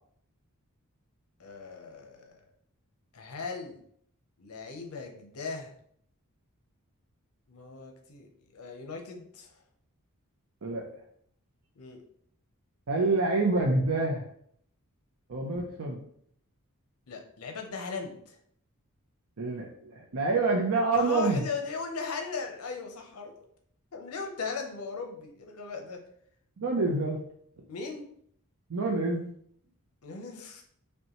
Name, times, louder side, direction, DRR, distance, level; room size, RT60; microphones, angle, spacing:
voice 1, 1.4-2.4 3.1-3.8 4.4-5.7 7.5-9.6 11.8-12.0 17.1-18.4 21.0-23.3 23.9-26.0 27.7-28.1 30.0-30.6, left 4 dB, 75° left, 3 dB, 0.7 m, -38 dB
voice 2, 12.9-14.2 15.3-16.0 19.4-21.4 26.6-27.2 28.7-29.3, right 3 dB, 65° right, 0 dB, 0.6 m, -27 dB
5.3 x 2.2 x 2.9 m, 0.65 s
head